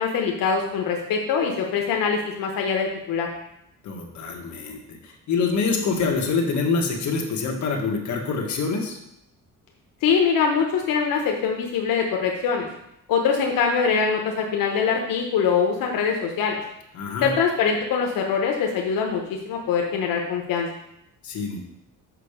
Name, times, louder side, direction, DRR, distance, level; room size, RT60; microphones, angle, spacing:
voice 1, 0.0-3.3 10.0-12.7 13.1-16.6 17.2-20.7, left 6 dB, 90° left, 1 dB, 1.0 m, -23 dB
voice 2, 3.8-9.0 16.9-17.3 21.2-21.6, left 4 dB, 60° left, 1 dB, 1.5 m, -26 dB
6.6 x 5.5 x 5.0 m, 0.81 s
cardioid pair, 160°, 33 cm